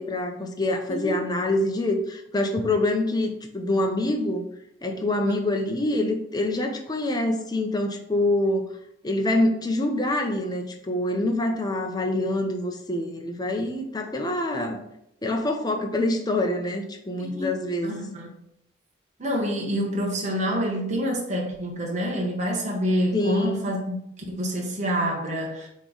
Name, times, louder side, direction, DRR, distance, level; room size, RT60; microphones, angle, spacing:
voice 1, 0.0-4.4 4.8-8.7 9.0-14.8 15.2-17.9 23.1-23.6, left 1 dB, 20° left, 3 dB, 0.8 m, -25 dB
voice 2, 0.9-1.2 17.2-17.5 17.8-18.3 19.2-25.7, equal, 40° right, -2 dB, 1.1 m, -27 dB
7.4 x 3.2 x 4.0 m, 0.76 s
head